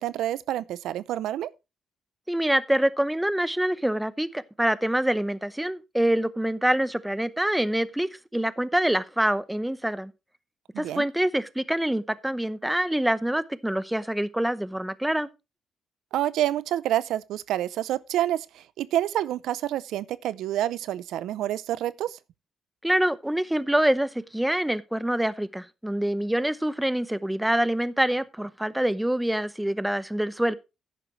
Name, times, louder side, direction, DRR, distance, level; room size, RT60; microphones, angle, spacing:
voice 1, 0.0-1.5 10.7-11.0 16.1-22.2, right 12 dB, 85° right, 0.5 m, -28 dB
voice 2, 2.3-10.1 10.8-15.3 22.8-30.5, right 1 dB, 5° right, 0.7 m, -25 dB
11.5 x 10.0 x 3.1 m
cardioid pair, 105°, 0 cm